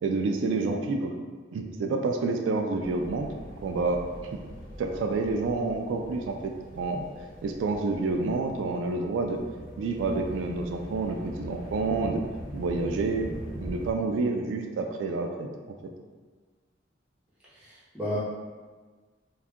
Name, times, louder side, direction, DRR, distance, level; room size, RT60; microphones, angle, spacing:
voice 1, 0.0-1.1 1.5-3.3 3.6-4.4 4.8-7.0 7.4-9.4 9.8-12.2 12.5-15.5, right 3 dB, 90° right, 3 dB, 0.3 m, -28 dB
sound 1, 2.8-13.9, equal, 50° left, 0.5 m, -42 dB
voice 2, 17.5-18.2, equal, 5° right, -10 dB, 1.0 m, -33 dB
2.6 x 2.3 x 3.5 m, 1.4 s
head